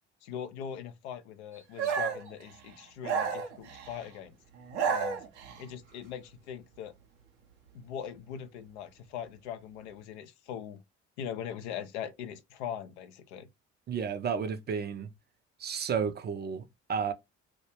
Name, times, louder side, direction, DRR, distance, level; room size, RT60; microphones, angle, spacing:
voice 1, 0.2-4.4 4.8-5.2 5.6-7.0 7.7-10.8 11.2-13.5, left 9 dB, 80° left, 0.5 m, -41 dB
sound 1, 1.8-2.3 3.0-4.0 4.6-5.6, right 7 dB, 85° right, 0.6 m, -31 dB
voice 2, 13.9-15.1 15.6-17.1, right 6 dB, 30° right, 0.4 m, -32 dB
2.2 x 2.1 x 2.9 m
hypercardioid pair, 55°, 33 cm